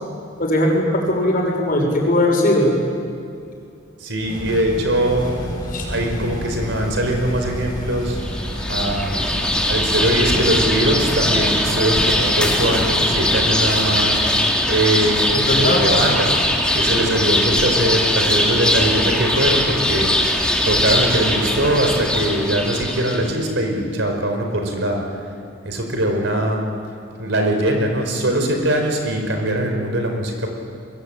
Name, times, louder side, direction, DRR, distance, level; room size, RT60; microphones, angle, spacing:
voice 1, 0.4-2.7 5.7-5.8 15.3-15.8, left 1 dB, 45° left, 0 dB, 6.6 m, -19 dB
voice 2, 4.0-5.5 5.9-8.2 8.7-9.2 9.6-20.2 20.6-25.3 25.6-26.7 27.2-30.5, right 1 dB, 65° right, 4 dB, 4.9 m, -21 dB
sound 1, 4.2-13.5, equal, 20° left, 5.8 m, -30 dB
sound 2, 8.2-23.3, left 1 dB, 5° left, 2.8 m, -20 dB
23.0 x 23.0 x 9.1 m, 2.5 s
head